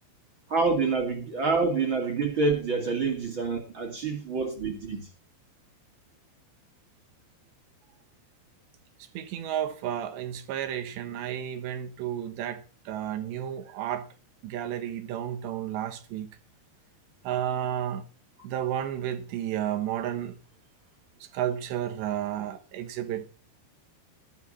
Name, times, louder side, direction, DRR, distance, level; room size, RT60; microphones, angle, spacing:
voice 1, 0.5-5.1, right 4 dB, 35° right, 2.3 m, -27 dB
voice 2, 9.2-14.1 14.4-16.3 17.2-18.1 18.4-20.4 21.2-23.3, right 10 dB, 80° right, 3.5 m, -32 dB
12.5 x 12.0 x 4.2 m
omnidirectional pair, 5.0 m